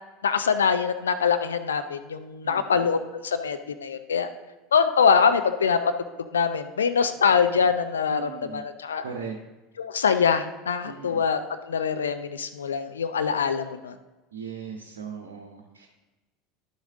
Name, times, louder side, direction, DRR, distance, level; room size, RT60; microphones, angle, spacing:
voice 1, 0.2-4.3 4.7-5.8 6.3-9.0 9.8-11.4 11.7-13.9, left 6 dB, 75° left, 9 dB, 0.6 m, -24 dB
voice 2, 2.4-2.8 8.1-8.6 9.0-9.3 10.8-11.2 14.3-16.0, right 6 dB, 75° right, 0 dB, 0.8 m, -38 dB
11.0 x 6.5 x 3.6 m, 1.1 s
figure-of-eight pair, 75°, 0 cm